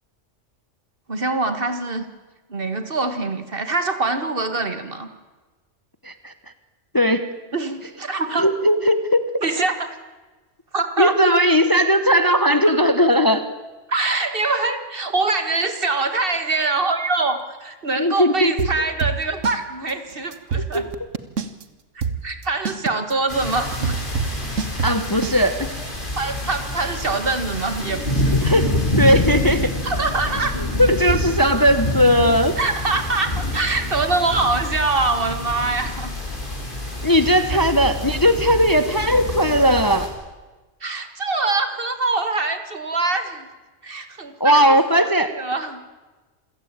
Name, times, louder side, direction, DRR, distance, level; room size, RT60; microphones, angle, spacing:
voice 1, 1.1-2.1 2.5-5.1 7.5-8.4 9.4-9.9 10.7-11.2 13.9-20.8 22.2-23.9 26.2-28.4 29.8-30.5 32.6-36.1 37.5-37.6 40.8-43.5 43.8-45.1 45.3-45.8, right 3 dB, 50° right, 9 dB, 2.0 m, -24 dB
voice 2, 6.9-7.3 8.4-9.2 11.0-13.5 18.0-18.7 20.7-20.8 24.8-25.7 28.3-29.7 30.6-32.6 37.0-40.1 44.4-45.4, equal, 20° left, 10 dB, 1.0 m, -18 dB
sound 1, 18.6-19.6 19.9-20.0 20.3-21.6 22.0-25.4, right 5 dB, 90° right, 1.5 m, -25 dB
sound 2, 23.3-40.1, left 1 dB, 40° left, 4.7 m, -27 dB
27.0 x 16.5 x 8.9 m, 1.2 s
omnidirectional pair, 1.3 m